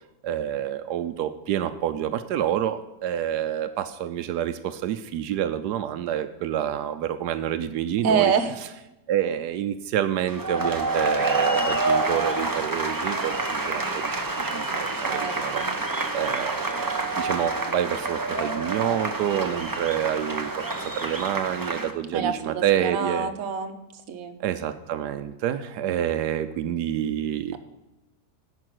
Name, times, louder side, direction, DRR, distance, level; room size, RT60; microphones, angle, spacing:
voice 1, 0.2-8.3 9.1-23.3 24.4-27.6, right 10 dB, 85° right, 10 dB, 1.2 m, -28 dB
voice 2, 8.0-8.5 14.9-15.8 22.1-23.7 24.1-24.4, right 6 dB, 60° right, 6 dB, 1.3 m, -26 dB
sound 1, 10.3-21.9, right 2 dB, 20° right, 0.6 m, -27 dB
11.0 x 5.7 x 7.7 m, 0.98 s
omnidirectional pair, 1.7 m